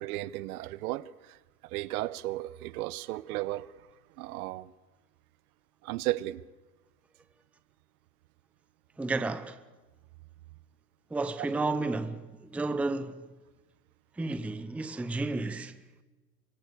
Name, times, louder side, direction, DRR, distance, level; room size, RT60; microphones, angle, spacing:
voice 1, 0.0-1.4 1.6-3.7 4.2-4.7 5.8-6.4 11.4-11.5, right 17 dB, 60° right, 1.0 m, -34 dB
voice 2, 9.0-9.6 11.1-13.3 14.2-15.8, right 3 dB, 5° right, 0.7 m, -32 dB
25.0 x 23.5 x 6.8 m
supercardioid pair, 135°, 49 cm